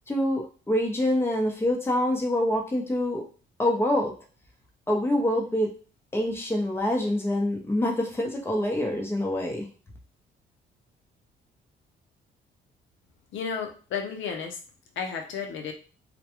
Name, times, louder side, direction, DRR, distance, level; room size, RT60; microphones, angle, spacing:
voice 1, 0.1-3.2 3.6-4.1 4.9-5.7 6.1-9.7, left 1 dB, 10° left, 0 dB, 0.7 m, -26 dB
voice 2, 13.3-14.6 15.0-15.7, left 6 dB, 75° left, 3 dB, 0.5 m, -32 dB
2.2 x 2.1 x 2.9 m, 0.38 s
cardioid pair, 90°, 20 cm